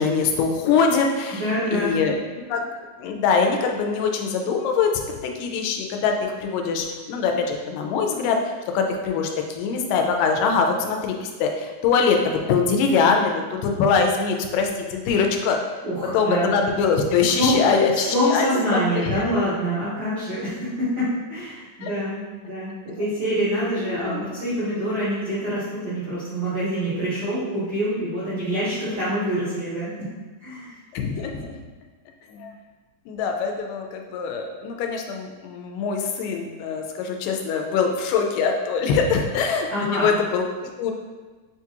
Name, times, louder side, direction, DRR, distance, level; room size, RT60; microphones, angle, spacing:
voice 1, 0.0-2.2 2.5-2.7 3.0-4.9 5.2-8.4 8.7-15.6 16.1-18.5 18.7-19.2 21.8-21.9 23.8-24.3 30.9-31.6 32.3-32.5 33.1-40.9, left 5 dB, 80° left, 3 dB, 2.1 m, -23 dB
voice 2, 1.3-1.9 15.8-16.5 17.3-17.6 17.9-29.9 30.4-30.7 39.7-40.0, equal, 80° right, -13 dB, 1.1 m, -25 dB
6.0 x 2.3 x 2.9 m, 1.3 s
omnidirectional pair, 3.9 m